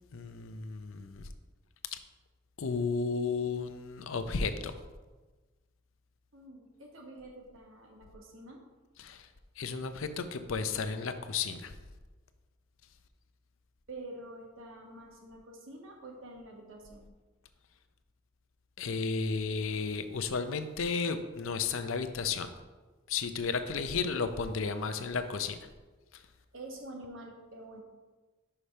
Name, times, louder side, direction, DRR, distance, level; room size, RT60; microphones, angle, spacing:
voice 1, 0.1-1.3 1.9-2.0 2.6-4.7 9.0-9.3 9.6-11.7 18.8-22.5 23.1-25.6 26.1-26.2, left 5 dB, 75° left, 9 dB, 0.6 m, -33 dB
voice 2, 6.3-8.6 13.9-17.0 23.6-23.8 26.5-27.8, right 1 dB, 70° right, 0 dB, 1.4 m, -47 dB
5.8 x 5.0 x 5.4 m, 1.3 s
head